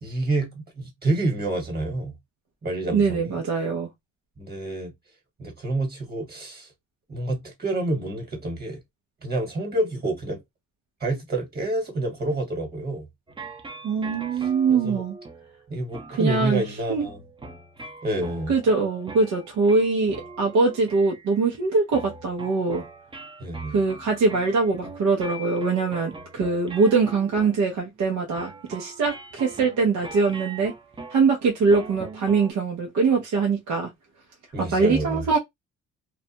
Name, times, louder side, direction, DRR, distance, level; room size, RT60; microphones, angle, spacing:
voice 1, 0.0-2.1 2.6-3.4 4.4-4.9 5.4-6.7 7.1-8.8 9.2-10.4 11.0-13.1 14.3-15.0 15.7-17.2 18.0-18.5 23.4-23.8 34.5-35.2, right 2 dB, 30° right, 1.4 m, -28 dB
voice 2, 2.9-3.9 13.8-15.2 16.1-17.1 18.5-22.8 23.7-30.7 31.1-33.9 34.6-35.4, right 4 dB, 70° right, 0.8 m, -23 dB
sound 1, 13.3-21.6 21.9-32.5, right 3 dB, 15° right, 0.6 m, -42 dB
2.4 x 2.1 x 2.8 m
cardioid pair, 90°, 30 cm